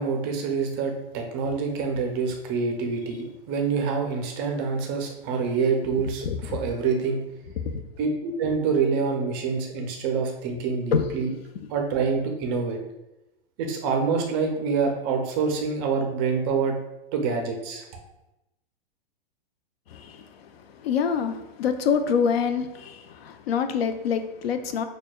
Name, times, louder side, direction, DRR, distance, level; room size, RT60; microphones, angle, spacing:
voice 1, 0.0-7.2 8.0-11.3 11.7-12.8 13.6-16.8 17.1-17.8, right 5 dB, 25° right, 2 dB, 0.4 m, -26 dB
voice 2, 6.2-6.6 7.7-7.8 10.9-11.1 19.9-24.8, left 6 dB, 85° left, 9 dB, 0.5 m, -26 dB
6.3 x 2.2 x 2.2 m, 0.93 s
hypercardioid pair, 150°, 30 cm